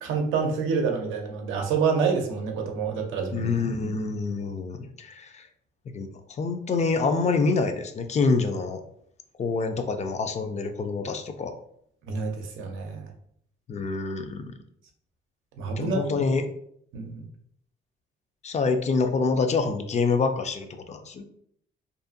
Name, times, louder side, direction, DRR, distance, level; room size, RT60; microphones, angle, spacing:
voice 1, 0.0-3.5 12.1-13.1 15.6-16.1 16.9-17.3, right 5 dB, 85° right, 3 dB, 0.5 m, -27 dB
voice 2, 3.3-5.4 5.9-6.1 6.4-8.8 9.4-11.5 13.7-14.5 15.8-16.5 18.4-21.2, left 4 dB, 35° left, 6 dB, 0.4 m, -26 dB
2.6 x 2.4 x 2.5 m, 0.68 s
cardioid pair, 90°, 20 cm